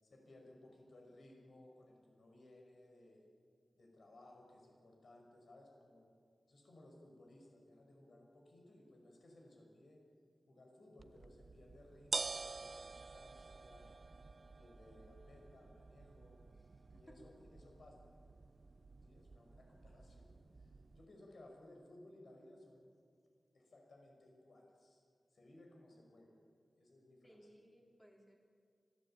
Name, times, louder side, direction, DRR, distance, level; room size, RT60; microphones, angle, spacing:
voice 1, 0.0-3.3 3.7-6.1 6.5-10.0 10.5-13.9 14.5-16.4 16.9-18.0 19.0-22.9 23.5-25.0 25.3-26.3 26.8-27.5, left 1 dB, 60° left, 1 dB, 5.4 m, -61 dB
sound 1, 11.0-21.0, right 3 dB, 45° right, 0.7 m, -48 dB
voice 2, 16.5-17.3 27.2-28.5, equal, 10° left, -1 dB, 3.8 m, -63 dB
25.5 x 17.0 x 8.8 m, 2.2 s
wide cardioid pair, 130°, 0 cm